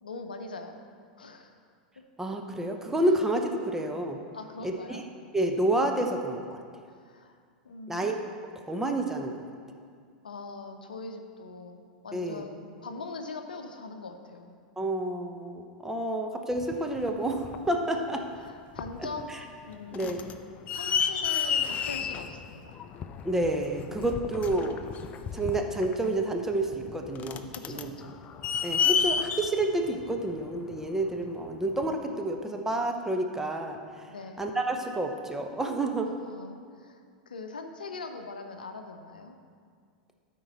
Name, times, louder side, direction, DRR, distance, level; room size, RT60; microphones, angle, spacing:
voice 1, 0.0-0.8 1.2-1.5 4.3-5.1 7.0-7.4 7.6-8.0 10.2-14.5 17.9-18.0 18.4-19.4 19.6-20.2 20.7-22.8 27.5-28.1 34.1-34.4 36.0-39.4, left 3 dB, 75° left, 6 dB, 0.7 m, -42 dB
voice 2, 2.2-4.2 4.6-4.7 5.3-6.6 7.9-8.1 8.7-9.3 12.1-12.4 14.8-18.2 19.9-20.2 23.2-24.8 25.3-27.9 28.6-33.8 34.4-36.1, right 1 dB, 10° right, 3 dB, 0.8 m, -29 dB
sound 1, 16.6-17.8 18.4-18.5 18.8-19.3 19.6-31.1 31.8-31.9, left 7 dB, 30° left, 0.4 m, -31 dB
12.5 x 4.6 x 4.0 m, 2.1 s
figure-of-eight pair, 90°, 5 cm